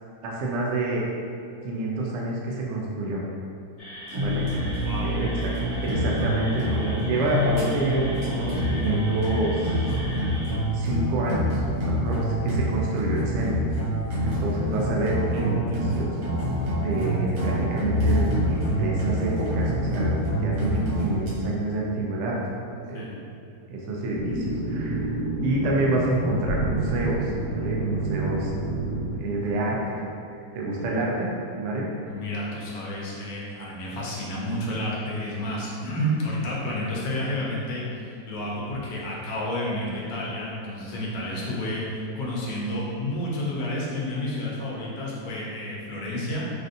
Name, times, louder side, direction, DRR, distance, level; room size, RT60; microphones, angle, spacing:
voice 1, 0.2-1.0 1.6-3.2 4.2-4.7 5.0-5.5 5.8-9.8 10.7-13.6 14.2-16.1 16.8-22.4 22.7-23.0 23.7-25.1 25.4-28.5 29.1-30.0 30.5-31.3 31.6-31.9, right 2 dB, 90° right, -3 dB, 0.6 m, -28 dB
sound 1, 3.8-10.5, equal, 40° left, 0.5 m, -40 dB
sound 2, 4.1-21.3, equal, 65° right, 1.2 m, -26 dB
voice 2, 4.8-5.1 22.9-23.2 32.1-46.5, left 1 dB, 70° left, -5 dB, 1.1 m, -30 dB
sound 3, 24.1-29.1, right 2 dB, 40° right, 1.8 m, -29 dB
3.2 x 2.6 x 2.5 m, 2.5 s
omnidirectional pair, 1.8 m